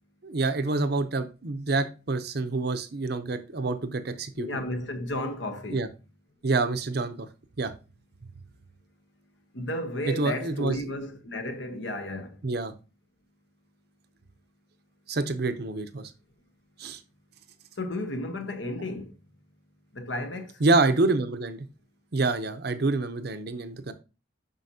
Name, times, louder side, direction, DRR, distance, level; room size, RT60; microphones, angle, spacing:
voice 1, 0.2-4.5 5.7-5.9 6.4-7.3 7.6-7.7 10.1-10.8 12.4-12.7 15.1-16.1 16.8-17.0 20.6-21.6 22.1-23.9, right 3 dB, 55° right, 0.7 m, -27 dB
voice 2, 4.4-5.8 9.5-12.4 17.8-19.1 19.9-20.5, left 1 dB, 65° left, 1.1 m, -33 dB
7.7 x 5.6 x 2.8 m
head